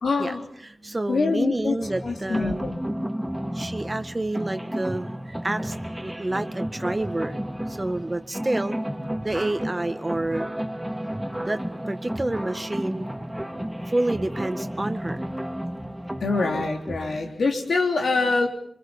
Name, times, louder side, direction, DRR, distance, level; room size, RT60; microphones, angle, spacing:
voice 1, 0.0-0.4 1.1-1.8 2.0-2.8 16.2-18.5, left 3 dB, 80° left, 3 dB, 3.4 m, -24 dB
voice 2, 0.6-2.6 3.5-7.4 7.7-8.8 9.2-10.5 11.5-13.1 13.9-15.3, right 2 dB, 30° right, 9 dB, 1.7 m, -29 dB
sound 1, 1.8-17.2, equal, 10° right, 2.4 m, -32 dB
25.0 x 23.5 x 7.2 m, 0.69 s
cardioid pair, 45°, 0 cm